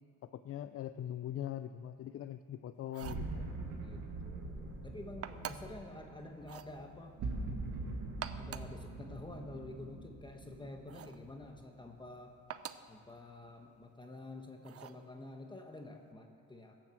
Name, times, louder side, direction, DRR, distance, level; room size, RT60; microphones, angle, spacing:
voice 1, 0.3-3.5, left 11 dB, 50° left, 11 dB, 0.5 m, -42 dB
sound 1, 2.8-3.3 5.2-5.8 6.4-6.7 8.0-8.8 10.9-11.2 12.5-12.9 14.6-15.0, right 9 dB, 50° right, 0.6 m, -46 dB
sound 2, 3.0-11.9, right 2 dB, 75° right, 2.1 m, -43 dB
voice 2, 3.4-7.2 8.3-12.3 12.9-16.7, left 2 dB, 15° left, 3 dB, 1.2 m, -49 dB
16.0 x 7.7 x 7.5 m, 2.8 s
cardioid pair, 90°, 30 cm